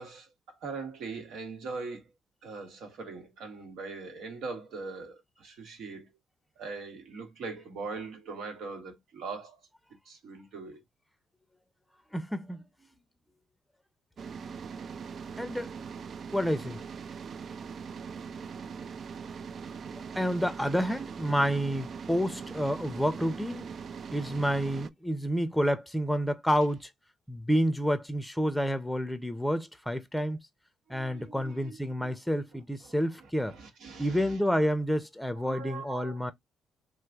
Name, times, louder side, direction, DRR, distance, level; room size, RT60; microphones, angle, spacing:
voice 1, 0.0-2.1 2.4-6.1 6.6-9.6 10.1-10.8 30.9-31.8 32.0-32.1 32.8-33.0 33.5-34.4 35.4-36.2, right 4 dB, 80° right, 1.3 m, -41 dB
voice 2, 12.1-12.6 15.4-15.7 16.3-16.8 19.9-23.7 24.1-26.9 27.3-30.4 30.9-33.6 34.0-36.3, equal, 5° left, 0.6 m, -29 dB
sound 1, 14.2-24.9, right 6 dB, 55° right, 0.3 m, -41 dB
3.2 x 2.1 x 3.4 m
cardioid pair, 90°, 0 cm